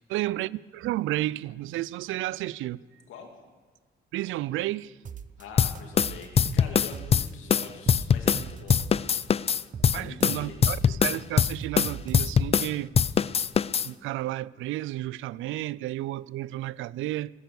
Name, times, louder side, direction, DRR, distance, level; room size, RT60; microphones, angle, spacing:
voice 1, 0.1-2.8 4.1-5.0 9.9-13.0 13.8-17.3, right 16 dB, 80° right, 0.4 m, -32 dB
sound 1, 5.0-5.4 5.7-7.3 7.6-9.2 9.5-12.6, right 7 dB, 40° right, 0.8 m, -40 dB
voice 2, 5.4-8.8 9.9-10.8, left 5 dB, 85° left, 2.5 m, -44 dB
sound 2, 5.6-8.4 8.7-12.7 12.9-13.9, left 7 dB, 30° left, 0.4 m, -23 dB
17.5 x 10.5 x 7.0 m
cardioid pair, 90°, 20 cm